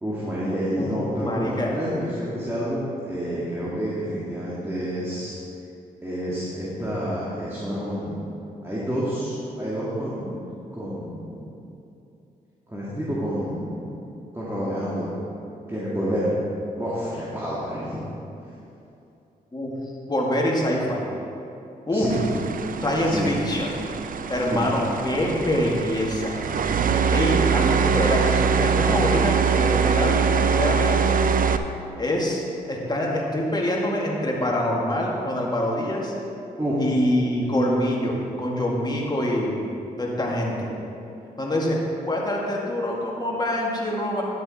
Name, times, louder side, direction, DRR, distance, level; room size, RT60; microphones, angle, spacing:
voice 1, 0.0-5.3 6.0-8.2 8.6-10.4 10.7-11.5 12.7-14.0 14.3-15.2 15.7-16.3 16.8-18.0 21.9-22.2 23.0-23.3 24.5-24.6 36.6-36.8, equal, 15° right, -8 dB, 2.3 m, -29 dB
voice 2, 1.2-1.8 19.5-19.7 20.1-21.1 21.9-22.1 22.8-23.8 24.3-26.4 27.1-31.2 32.0-32.4 32.7-36.1 36.8-39.6 40.0-40.7 41.4-44.2, left 1 dB, 25° left, -2 dB, 2.1 m, -25 dB
sound 1, 22.1-31.6, right 6 dB, 60° right, 0.5 m, -23 dB
10.5 x 7.3 x 4.3 m, 2.8 s
cardioid pair, 55°, 16 cm